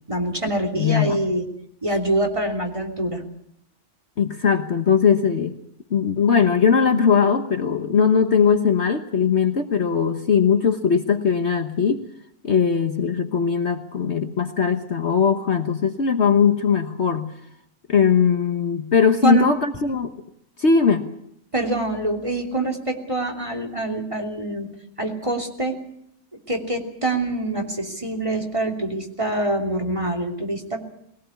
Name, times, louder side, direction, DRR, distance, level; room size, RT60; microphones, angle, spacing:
voice 1, 0.1-1.4 1.8-3.2 19.2-19.5 21.5-24.7 25.0-25.8 26.5-30.8, right 2 dB, 20° right, 3 dB, 3.1 m, -25 dB
voice 2, 0.8-1.2 4.2-5.6 5.9-12.0 12.4-17.3 17.9-20.1 20.6-21.1, left 6 dB, 50° left, 7 dB, 1.4 m, -20 dB
22.0 x 18.0 x 8.2 m, 0.74 s
omnidirectional pair, 1.6 m